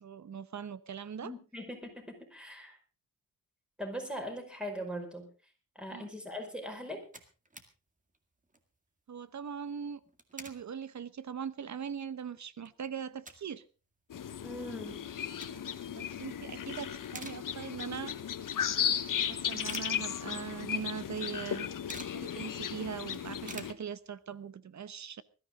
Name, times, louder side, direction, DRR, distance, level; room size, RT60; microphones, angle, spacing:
voice 1, 0.0-1.3 5.9-6.1 9.1-10.0 10.3-13.6 15.9-18.1 19.2-21.7 22.1-25.2, right 7 dB, 55° right, 16 dB, 1.0 m, -41 dB
voice 2, 1.2-2.8 3.8-5.3 5.7-7.0 14.4-15.0, equal, 5° right, 3 dB, 5.1 m, -40 dB
sound 1, 6.5-6.6 6.8-7.7 8.1-8.2 8.4-8.7 9.9-10.6 11.2-11.3 11.8-11.9 12.2-13.6 13.9-14.0 15.0-15.9 16.3-16.6 16.9-17.9 18.3-18.4 19.1-20.6 20.9-21.0 21.2-22.2 22.6-22.7 22.9-24.4, right 2 dB, 25° right, 2.1 m, -49 dB
sound 2, 14.1-23.7, left 9 dB, 70° left, 1.2 m, -36 dB
20.5 x 13.5 x 3.8 m, 0.33 s
wide cardioid pair, 105°, 34 cm